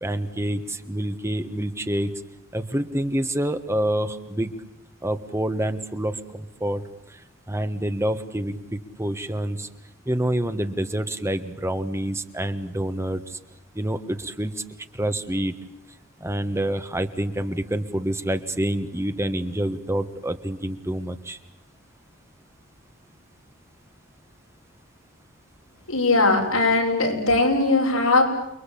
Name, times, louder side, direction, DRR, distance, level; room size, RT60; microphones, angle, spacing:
voice 1, 0.0-2.1 2.5-4.5 5.0-7.2 7.5-9.7 10.0-13.4 13.7-14.6 14.9-15.5 16.2-21.4, right 1 dB, 15° right, 9 dB, 1.4 m, -27 dB
voice 2, 25.9-28.2, left 2 dB, 90° left, 1 dB, 7.1 m, -20 dB
29.5 x 22.5 x 8.5 m, 0.84 s
head